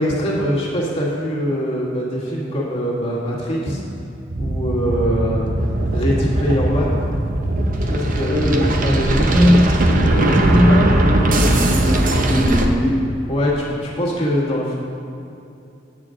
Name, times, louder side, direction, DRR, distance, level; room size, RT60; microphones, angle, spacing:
voice 1, 0.0-3.8 4.4-5.5 5.9-7.0 7.8-9.7 13.3-14.7, equal, 30° left, -5 dB, 1.6 m, -23 dB
sound 1, 4.3-12.7, right 1 dB, 45° right, 0.7 m, -19 dB
voice 2, 8.3-8.7 9.3-9.7 10.0-13.0, equal, 5° left, -10 dB, 1.3 m, -19 dB
8.5 x 8.5 x 3.7 m, 2.7 s
head